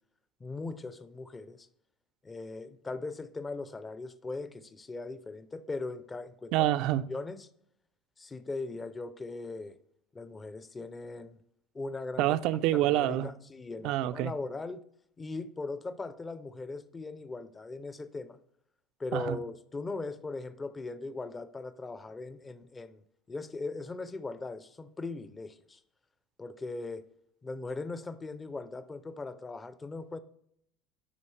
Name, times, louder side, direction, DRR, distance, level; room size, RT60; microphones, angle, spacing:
voice 1, 0.4-1.7 2.2-6.5 7.1-7.5 8.2-9.8 10.1-11.4 11.7-12.4 12.7-14.8 15.2-18.4 19.0-23.0 23.3-25.8 26.4-27.1 27.4-30.2, left 3 dB, 15° left, 0.4 m, -39 dB
voice 2, 6.5-7.1 12.2-13.3 13.8-14.3 19.1-19.4, right 14 dB, 60° right, 0.3 m, -27 dB
9.8 x 4.8 x 3.2 m
supercardioid pair, 130°, 0 cm